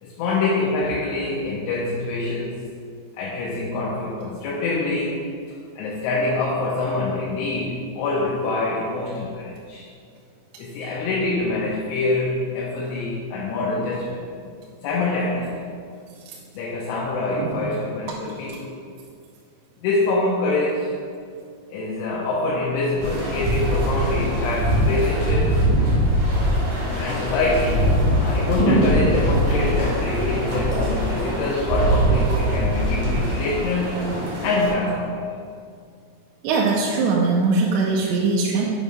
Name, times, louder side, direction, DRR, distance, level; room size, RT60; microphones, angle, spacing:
voice 1, 0.0-2.7 3.1-9.9 10.6-14.3 14.8-15.7 16.5-18.7 19.8-21.0 21.7-25.7 26.8-34.1 34.4-35.2, left 2 dB, 75° left, -5 dB, 2.8 m, -25 dB
sound 1, 23.0-34.7, equal, 60° right, 1.6 m, -22 dB
voice 2, 36.4-38.7, right 3 dB, 80° right, -3 dB, 2.7 m, -21 dB
8.2 x 3.2 x 5.3 m, 2.3 s
omnidirectional pair, 5.3 m